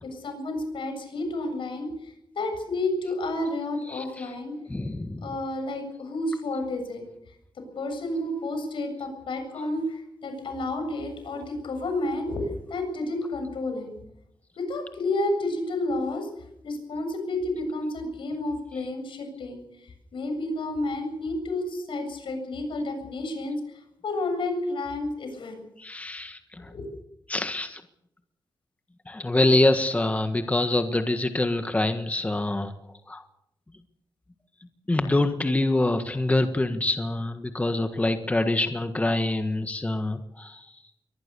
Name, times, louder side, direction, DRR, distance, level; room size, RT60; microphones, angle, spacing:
voice 1, 0.0-4.5 5.2-7.1 7.6-13.9 14.6-16.3 16.6-23.6 24.0-25.6 26.7-26.9, left 2 dB, 90° left, 6 dB, 7.6 m, -31 dB
voice 2, 3.9-4.3 4.7-5.2 25.8-26.7 27.3-27.8 29.1-32.7 33.1-33.2 34.9-40.7, left 2 dB, 15° left, 8 dB, 1.6 m, -25 dB
23.0 x 19.5 x 7.0 m, 0.77 s
wide cardioid pair, 140°, 8 cm